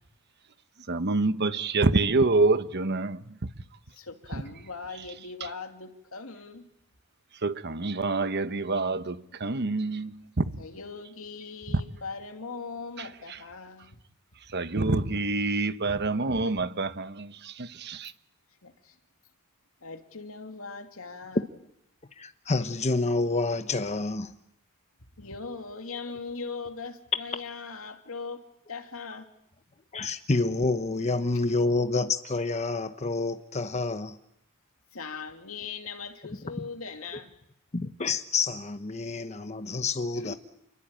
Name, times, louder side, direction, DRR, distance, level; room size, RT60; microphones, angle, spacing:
voice 1, 0.9-3.5 7.4-10.6 11.7-11.8 13.0-13.4 14.5-18.1, right 3 dB, 50° right, 1.1 m, -27 dB
voice 2, 3.9-6.7 10.6-13.9 18.6-19.0 19.8-21.4 25.2-29.3 34.9-37.3 39.6-39.8 40.2-40.4, left 4 dB, 70° left, 2.6 m, -40 dB
voice 3, 22.2-24.4 29.9-34.2 37.7-40.3, left 3 dB, 30° left, 1.0 m, -28 dB
29.0 x 21.5 x 8.8 m
head